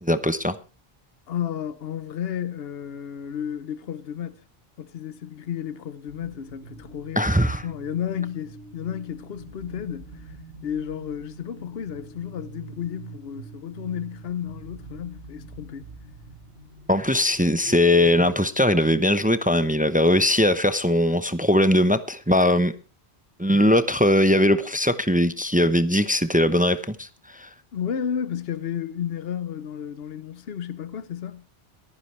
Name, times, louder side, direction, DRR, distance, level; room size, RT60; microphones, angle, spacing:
voice 1, 0.0-0.5 7.2-7.6 16.9-22.7 23.4-27.5, left 1 dB, 10° right, 0.7 m, -20 dB
voice 2, 1.3-4.4 4.8-10.3 10.6-15.9 27.7-31.5, left 9 dB, 70° left, 1.1 m, -32 dB
sound 1, 6.1-18.4, right 3 dB, 80° right, 1.9 m, -44 dB
22.5 x 9.9 x 3.2 m
omnidirectional pair, 1.1 m